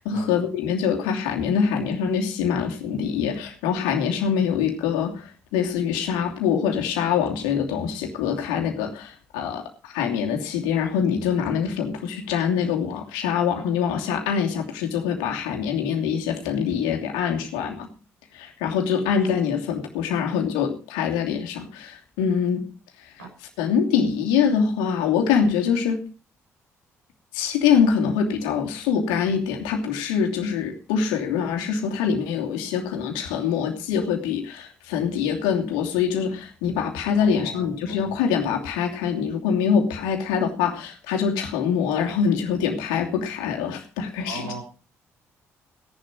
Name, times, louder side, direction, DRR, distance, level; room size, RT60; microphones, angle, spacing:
voice 1, 0.0-17.9 18.3-22.7 23.0-23.1 23.6-26.0 27.3-44.5, left 7 dB, 75° left, 3 dB, 2.8 m, -24 dB
voice 2, 37.2-38.1 44.2-44.6, right 2 dB, 90° right, 0 dB, 6.6 m, -38 dB
17.0 x 11.0 x 4.8 m, 0.36 s
figure-of-eight pair, 45°, 8 cm